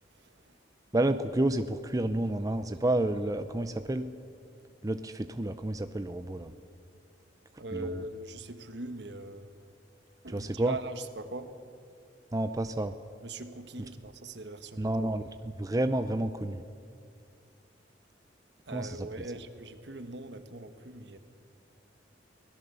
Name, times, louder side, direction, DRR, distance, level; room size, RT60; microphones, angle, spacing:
voice 1, 0.9-4.1 4.8-6.5 7.7-8.0 10.3-10.8 12.3-12.9 14.8-16.6 18.7-19.3, right 1 dB, 20° right, 9 dB, 0.6 m, -30 dB
voice 2, 7.6-9.5 10.2-11.5 13.2-14.9 18.7-21.2, right 2 dB, 65° right, 9 dB, 1.4 m, -41 dB
24.0 x 18.0 x 6.9 m, 2.3 s
head